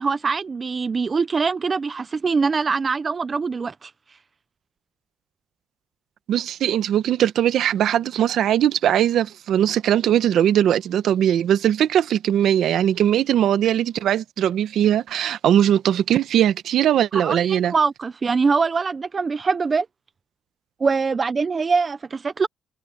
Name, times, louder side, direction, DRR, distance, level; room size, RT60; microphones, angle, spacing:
voice 1, 0.0-3.9 17.1-19.9 20.8-22.5, right 4 dB, 25° right, 0.4 m, -23 dB
voice 2, 6.3-17.7, right 10 dB, 55° right, 0.9 m, -20 dB
cardioid pair, 165°, 0 cm